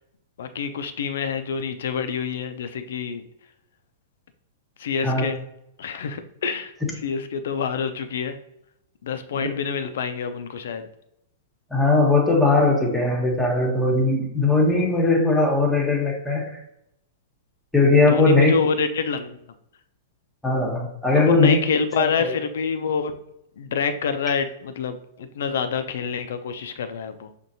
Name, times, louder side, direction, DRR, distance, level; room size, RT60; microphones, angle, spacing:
voice 1, 0.4-3.2 4.8-5.4 5.8-6.7 7.0-8.4 9.0-10.9 18.1-19.3 21.1-23.1 23.6-27.3, left 6 dB, 65° left, 9 dB, 0.5 m, -27 dB
voice 2, 11.7-16.6 17.7-18.5 20.4-21.6 22.0-22.3, left 3 dB, 5° left, 0 dB, 1.1 m, -19 dB
6.1 x 2.5 x 2.7 m, 0.80 s
figure-of-eight pair, 100°, 0 cm